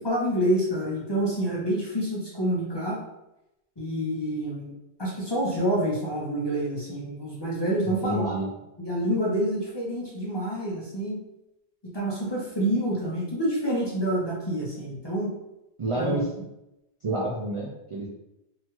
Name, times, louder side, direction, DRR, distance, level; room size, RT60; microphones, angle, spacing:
voice 1, 0.0-3.0 3.8-4.7 5.0-8.4 8.8-11.2 11.9-15.3 16.0-16.1, right 1 dB, 35° left, -5 dB, 0.5 m, -27 dB
voice 2, 7.8-8.5 15.8-16.2 17.0-18.1, right 1 dB, 60° right, -5 dB, 0.3 m, -29 dB
2.8 x 2.3 x 2.9 m, 0.89 s
omnidirectional pair, 1.2 m